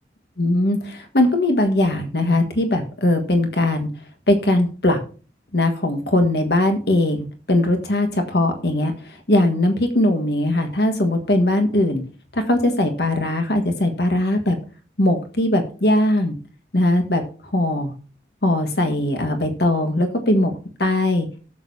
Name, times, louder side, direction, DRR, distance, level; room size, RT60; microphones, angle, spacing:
voice 1, 0.4-3.9 4.3-5.0 5.5-12.0 12.3-14.6 15.0-16.4 16.7-17.2 17.5-17.9 18.4-20.5 20.8-21.3, left 1 dB, 65° left, 6 dB, 1.6 m, -20 dB
18.0 x 6.6 x 2.8 m, 0.38 s
head